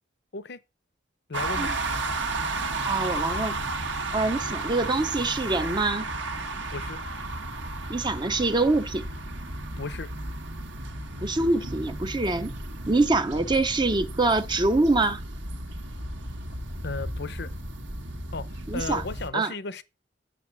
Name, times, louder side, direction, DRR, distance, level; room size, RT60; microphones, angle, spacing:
voice 1, 1.3-1.7 6.7-7.0 9.8-10.1 16.8-17.5 18.3-19.8, left 3 dB, 60° left, 0.8 m, -35 dB
sound 1, 1.3-19.3, right 2 dB, 65° right, 1.5 m, -33 dB
voice 2, 2.8-3.6 4.1-6.1 7.9-9.0 11.2-12.5 12.9-15.2 18.7-19.0 19.3-19.5, right 2 dB, 25° right, 0.7 m, -25 dB
8.4 x 7.0 x 7.2 m
head